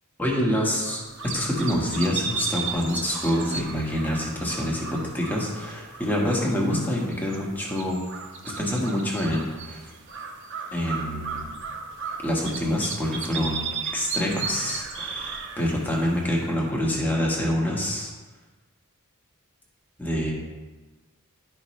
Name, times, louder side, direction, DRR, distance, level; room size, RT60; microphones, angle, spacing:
voice 1, 0.2-1.0 1.3-8.0 8.4-9.9 10.7-11.5 12.2-18.1 20.0-20.3, left 1 dB, 10° left, -3 dB, 1.4 m, -26 dB
sound 1, 0.8-16.9, right 5 dB, 55° right, 0.9 m, -35 dB
11.5 x 5.7 x 3.2 m, 1.3 s
head